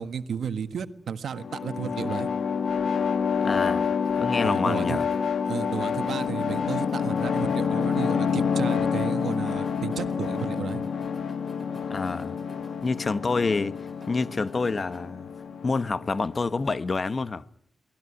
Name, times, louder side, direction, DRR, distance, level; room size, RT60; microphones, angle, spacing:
voice 1, 0.0-2.3 4.4-5.0 5.4-10.8, right 7 dB, 85° right, 1.5 m, -33 dB
sound 1, 1.3-16.8, left 6 dB, 80° left, 1.5 m, -28 dB
voice 2, 3.4-3.9 4.2-5.1 11.9-12.4 12.8-13.8 14.1-15.3 15.6-17.4, left 4 dB, 45° left, 1.0 m, -27 dB
sound 2, 3.7-15.0, right 1 dB, 5° right, 4.7 m, -53 dB
23.5 x 19.0 x 9.9 m
cardioid pair, 85°, 0 cm